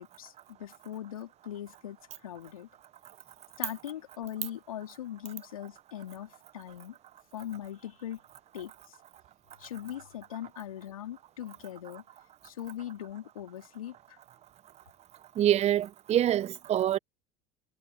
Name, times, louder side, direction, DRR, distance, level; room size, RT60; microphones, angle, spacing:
voice 1, 0.0-2.7 3.6-7.0 7.3-8.2 8.5-9.0 9.6-12.0 12.4-14.2, left 11 dB, 85° left, 2.6 m, -41 dB
voice 2, 15.4-17.0, right 11 dB, 40° right, 0.8 m, -25 dB
hypercardioid pair, 75°, 17 cm